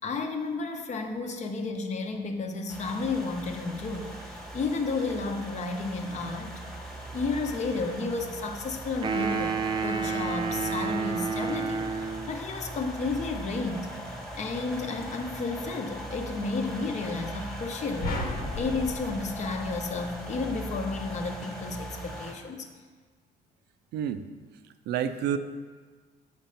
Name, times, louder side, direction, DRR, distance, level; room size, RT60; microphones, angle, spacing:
voice 1, 0.0-6.5 7.1-13.9 14.4-18.1 18.6-22.7, left 3 dB, 45° left, 5 dB, 0.8 m, -32 dB
sound 1, 2.7-22.3, right 1 dB, 5° left, 1.2 m, -40 dB
sound 2, 9.0-12.4, right 5 dB, 30° right, 0.5 m, -30 dB
sound 3, 18.0-20.4, left 1 dB, 65° left, 1.2 m, -35 dB
voice 2, 23.9-24.3 24.9-25.4, right 9 dB, 75° right, 10 dB, 0.5 m, -28 dB
6.6 x 4.4 x 5.2 m, 1.5 s
cardioid pair, 110°, 17 cm